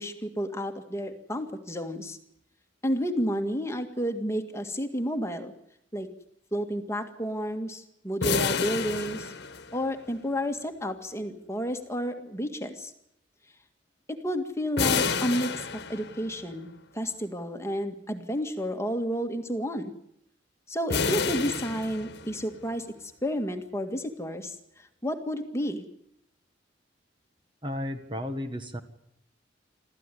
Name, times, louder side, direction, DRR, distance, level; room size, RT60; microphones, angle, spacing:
voice 1, 0.0-2.2 2.8-5.5 5.9-6.1 6.5-9.3 9.7-12.9 14.1-19.9 20.7-22.9 23.2-25.8, equal, 15° left, 6 dB, 1.9 m, -31 dB
sound 1, 8.2-10.1 14.8-16.4 20.9-22.5, left 5 dB, 60° left, 1.5 m, -29 dB
voice 2, 27.6-28.8, left 1 dB, 25° right, 8 dB, 1.5 m, -33 dB
26.5 x 14.0 x 10.0 m, 0.74 s
head